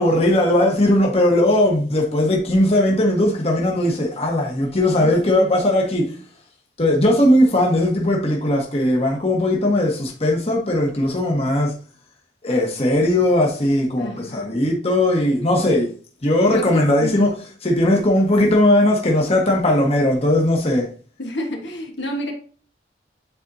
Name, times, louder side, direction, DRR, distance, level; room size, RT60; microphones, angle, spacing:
voice 1, 0.0-6.1 6.8-11.7 12.4-15.9 16.2-17.3 17.6-20.9, left 1 dB, 35° left, 1.3 m, -18 dB
voice 2, 4.9-5.5 14.0-14.6 16.5-17.4 21.2-22.3, left 1 dB, 80° left, 1.4 m, -30 dB
9.3 x 4.3 x 2.7 m
head